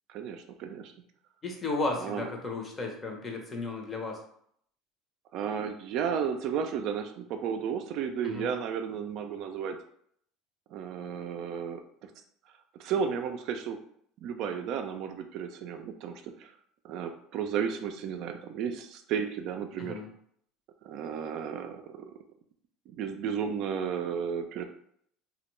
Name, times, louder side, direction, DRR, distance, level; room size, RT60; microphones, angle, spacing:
voice 1, 0.1-0.9 2.0-2.3 5.3-9.8 10.7-11.8 12.8-13.8 14.2-16.5 16.8-20.0 20.8-22.1 22.9-24.6, right 7 dB, 60° right, 6 dB, 0.3 m, -33 dB
voice 2, 1.4-4.2 8.2-8.5 19.8-20.1, left 3 dB, 25° left, 1 dB, 0.7 m, -34 dB
2.2 x 2.1 x 3.0 m, 0.66 s
supercardioid pair, 95°, 0 cm